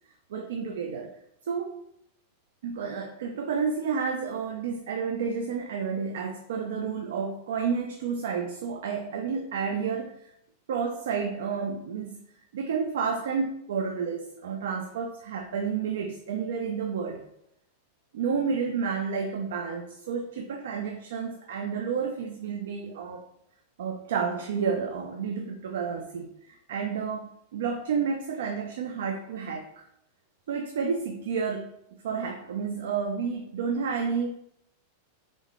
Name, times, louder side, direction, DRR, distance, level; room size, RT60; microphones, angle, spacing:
voice 1, 0.3-1.1 1.5-1.8 2.6-10.1 10.7-12.2 12.5-17.2 18.1-23.2 23.8-29.9 30.5-31.7 32.0-34.3, right 6 dB, 80° right, 4 dB, 0.5 m, -30 dB
3.7 x 3.6 x 3.6 m, 0.76 s
supercardioid pair, 155°, 0 cm